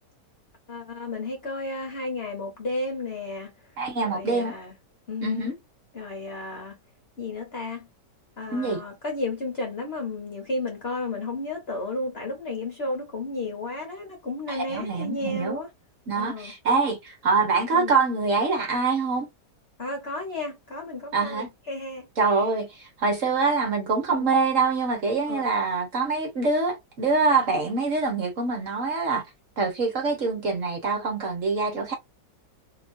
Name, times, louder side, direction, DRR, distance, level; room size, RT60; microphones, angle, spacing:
voice 1, 0.7-3.5 4.0-4.8 5.1-5.6 5.9-6.8 7.2-7.9 8.4-15.7 16.1-16.5 17.7-17.9 19.8-22.1 24.1-24.3 25.3-25.5, left 2 dB, 45° left, 1.0 m, -33 dB
voice 2, 3.8-4.5 5.2-5.5 8.5-8.8 14.5-15.6 16.1-19.3 21.1-21.5 22.2-22.7 23.0-29.2 29.6-31.9, right 4 dB, 50° right, 1.3 m, -25 dB
3.0 x 3.0 x 2.5 m
omnidirectional pair, 1.9 m